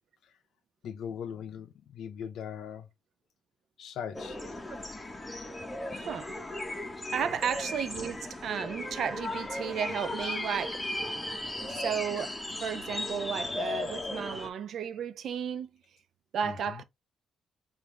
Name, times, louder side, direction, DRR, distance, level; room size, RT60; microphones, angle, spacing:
voice 1, 0.8-2.9 3.8-4.4 16.4-16.8, left 8 dB, 70° left, 0.5 m, -40 dB
sound 1, 4.1-14.5, left 2 dB, 15° left, 1.0 m, -36 dB
voice 2, 5.9-6.3 7.1-10.9 11.6-15.7 16.3-16.8, right 7 dB, 65° right, 0.6 m, -34 dB
4.9 x 2.5 x 3.3 m
cardioid pair, 90°, 0 cm